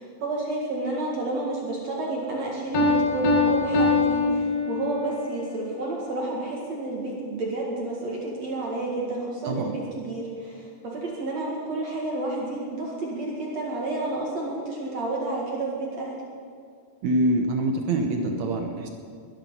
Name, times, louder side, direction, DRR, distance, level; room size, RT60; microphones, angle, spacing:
voice 1, 0.0-16.2, right 2 dB, 50° right, -3 dB, 2.8 m, -30 dB
Piano, 2.7-5.2, left 3 dB, 45° left, 2.7 m, -22 dB
voice 2, 17.0-18.9, right 1 dB, 70° right, 4 dB, 1.8 m, -25 dB
22.0 x 10.5 x 5.6 m, 2.4 s
omnidirectional pair, 4.5 m